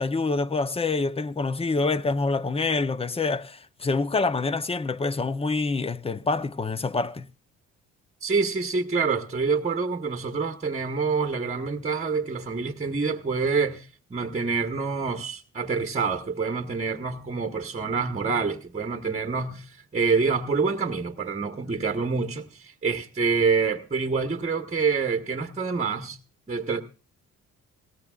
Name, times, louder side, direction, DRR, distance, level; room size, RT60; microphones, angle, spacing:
voice 1, 0.0-7.3, left 3 dB, 20° left, 0.8 m, -26 dB
voice 2, 8.2-26.2 26.5-26.8, right 4 dB, 25° right, 1.2 m, -27 dB
18.0 x 18.0 x 2.4 m
cardioid pair, 90°, 30 cm